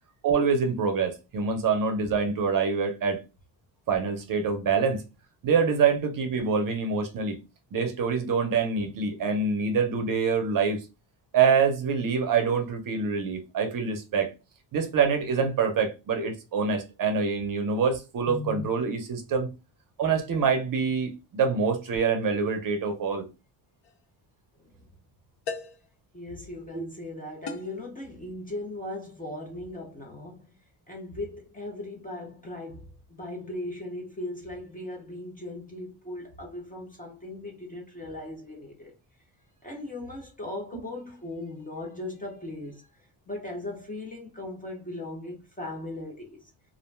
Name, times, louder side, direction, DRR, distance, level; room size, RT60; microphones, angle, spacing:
voice 1, 0.2-3.2 3.9-5.0 5.4-7.4 7.7-10.8 11.3-14.3 14.7-19.5 20.0-23.3 26.7-26.8, right 5 dB, 50° right, 0.5 m, -25 dB
sound 1, 23.8-24.1 25.5-25.9 27.5-27.8, left 4 dB, 60° left, 0.6 m, -37 dB
voice 2, 24.6-24.9 26.1-30.5 30.9-38.9 39.6-42.9 43.3-46.7, left 1 dB, 20° left, 0.4 m, -38 dB
2.4 x 2.1 x 3.1 m
wide cardioid pair, 175°, 45 cm